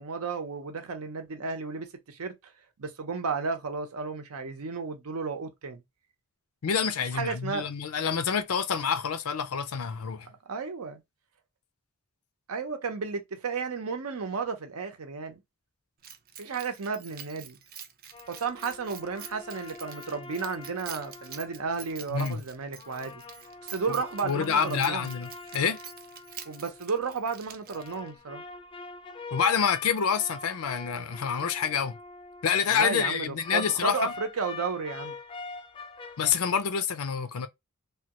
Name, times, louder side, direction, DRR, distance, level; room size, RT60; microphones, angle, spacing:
voice 1, 0.0-2.3 2.8-5.8 7.1-7.7 10.5-11.0 12.5-15.4 16.4-17.6 18.3-23.2 23.6-25.1 26.5-28.4 32.7-35.2, right 5 dB, 85° right, 0.7 m, -33 dB
voice 2, 6.6-10.3 22.1-22.4 23.9-24.0 24.2-25.8 29.3-31.9 32.4-34.1 36.2-37.5, left 7 dB, 80° left, 0.5 m, -27 dB
Keys jangling, 16.0-28.2, right 9 dB, 40° right, 0.4 m, -47 dB
sound 1, 18.1-22.2 22.7-27.1 27.7-32.8 33.4-36.3, left 4 dB, 25° left, 0.3 m, -44 dB
3.1 x 2.2 x 2.9 m
head